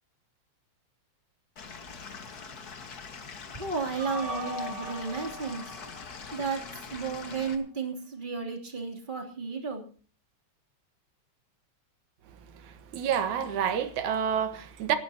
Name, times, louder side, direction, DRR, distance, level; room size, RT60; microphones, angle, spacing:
Stream / Liquid, 1.6-7.6, left 5 dB, 40° left, 1.7 m, -43 dB
voice 1, 3.5-5.7 6.3-9.8, right 5 dB, 15° right, 2.9 m, -33 dB
sound 1, 4.0-7.1, equal, 50° right, 3.7 m, -40 dB
voice 2, 12.5-15.0, right 8 dB, 90° right, 2.7 m, -29 dB
28.5 x 12.0 x 2.9 m
omnidirectional pair, 3.3 m